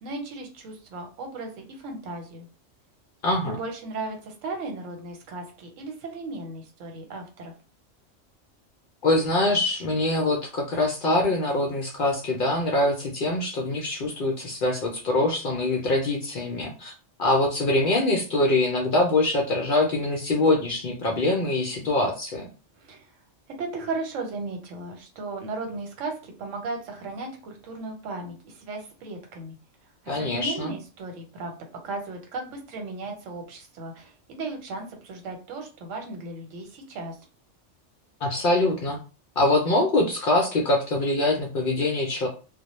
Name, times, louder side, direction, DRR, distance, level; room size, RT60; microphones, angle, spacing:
voice 1, 0.0-2.5 3.4-7.5 22.8-23.1 23.6-29.6 30.1-31.6 31.8-37.2, right 3 dB, 90° right, 3 dB, 1.1 m, -36 dB
voice 2, 3.2-3.6 9.0-16.9 17.2-22.5 30.1-30.7 38.2-39.0 39.4-42.3, left 2 dB, 60° left, 0 dB, 0.6 m, -24 dB
2.1 x 2.0 x 2.9 m, 0.34 s
omnidirectional pair, 1.3 m